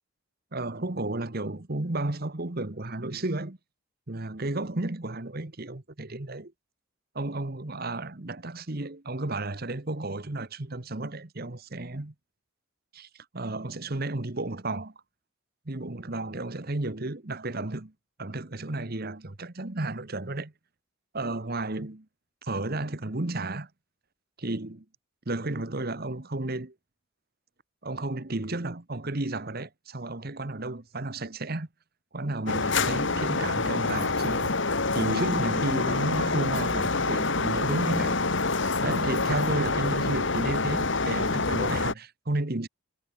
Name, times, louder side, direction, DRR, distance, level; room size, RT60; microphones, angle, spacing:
voice 1, 0.5-3.6 4.1-6.5 7.1-12.1 12.9-14.9 15.7-17.9 18.2-20.5 21.1-22.0 22.4-23.7 24.4-24.8 25.3-26.7 27.8-31.7 32.1-34.6 34.9-38.2 38.8-42.7, right 2 dB, 45° right, 1.3 m, -32 dB
sound 1, 32.5-41.9, left 3 dB, 55° left, 1.9 m, -26 dB
head